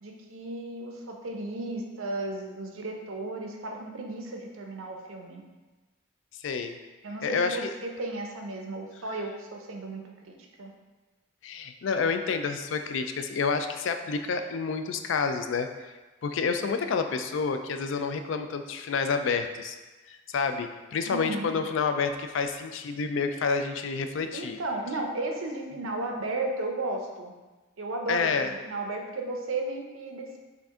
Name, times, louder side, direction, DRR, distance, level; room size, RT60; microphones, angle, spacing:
voice 1, 0.0-5.4 7.0-10.0 10.3-10.7 21.1-21.6 24.3-27.3 27.8-30.4, right 2 dB, 80° right, 2 dB, 0.7 m, -34 dB
voice 2, 6.4-6.8 7.2-7.7 11.4-15.7 16.2-19.8 20.1-24.6 28.1-28.5, left 5 dB, 65° left, 7 dB, 0.3 m, -29 dB
5.8 x 2.5 x 3.6 m, 1.2 s
head